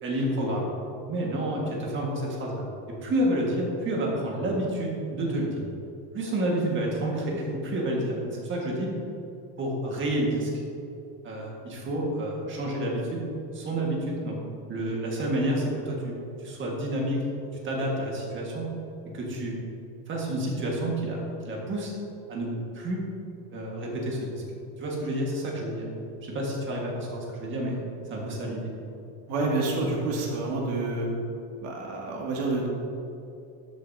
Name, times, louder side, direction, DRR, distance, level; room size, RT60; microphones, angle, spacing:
voice 1, 0.0-0.7 1.1-5.6 6.1-8.9 9.6-10.5 11.2-13.2 13.5-14.4 14.7-17.2 17.6-18.7 19.1-19.6 20.1-21.9 22.3-22.5 22.7-23.0 23.5-24.4 24.8-25.9 26.2-27.8 28.1-28.7, right 1 dB, 25° right, -2 dB, 1.7 m, -29 dB
voice 2, 29.3-31.1 31.6-32.7, right 2 dB, 65° right, -2 dB, 2.3 m, -28 dB
13.0 x 8.2 x 2.8 m, 2.7 s
cardioid pair, 175°, 42 cm